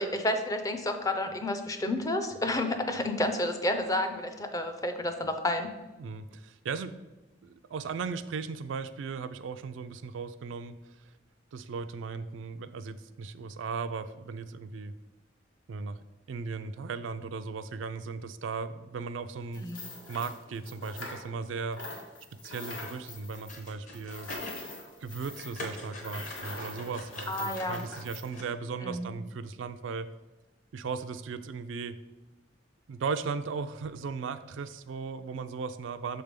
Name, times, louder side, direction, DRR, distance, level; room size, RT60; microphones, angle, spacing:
voice 1, 0.0-5.7 19.6-19.8 27.3-27.8 28.8-29.1, left 1 dB, 20° left, 7 dB, 0.4 m, -30 dB
voice 2, 6.0-7.0 7.4-10.8 11.5-15.0 15.7-16.0 16.3-19.7 20.1-21.8 22.4-24.3 25.0-30.1 30.7-32.0 32.9-36.2, right 5 dB, 75° right, 11 dB, 0.4 m, -37 dB
sound 1, 19.5-21.5 21.7-28.3, left 2 dB, 80° left, 1.5 m, -43 dB
sound 2, 23.3-24.6 25.0-28.5, left 2 dB, 40° left, 0.9 m, -44 dB
6.4 x 3.4 x 5.1 m, 1.1 s
head